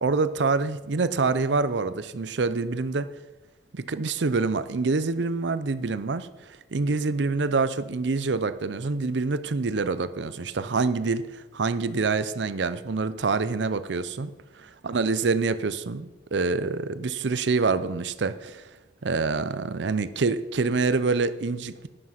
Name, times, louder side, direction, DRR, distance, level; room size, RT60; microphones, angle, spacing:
voice 1, 0.0-3.1 3.7-14.3 14.6-18.7 19.0-21.9, right 4 dB, 75° right, 14 dB, 0.6 m, -26 dB
11.0 x 10.0 x 5.8 m, 1.1 s
head